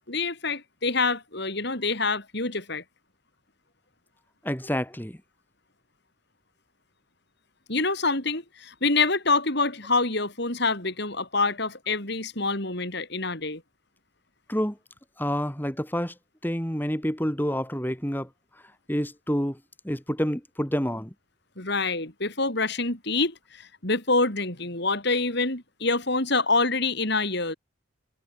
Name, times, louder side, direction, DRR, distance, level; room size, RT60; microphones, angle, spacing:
voice 1, 0.1-2.8 7.7-13.6 21.6-27.5, left 3 dB, 50° left, 4.5 m, -26 dB
voice 2, 4.4-5.2 14.5-14.8 15.2-16.1 16.4-18.3 18.9-19.6 19.8-21.1, equal, 10° left, 3.5 m, -28 dB
head